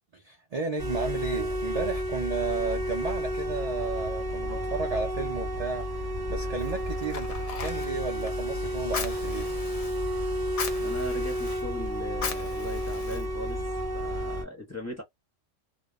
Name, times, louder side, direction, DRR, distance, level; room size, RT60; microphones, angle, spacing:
voice 1, 0.1-9.5, right 4 dB, 60° right, 0.4 m, -33 dB
sound 1, 0.8-14.4, equal, 20° right, 1.0 m, -31 dB
Fire, 6.6-13.8, left 6 dB, 70° left, 0.3 m, -39 dB
voice 2, 10.8-13.6 13.9-15.0, left 1 dB, 15° left, 0.6 m, -39 dB
2.7 x 2.0 x 2.2 m
omnidirectional pair, 1.3 m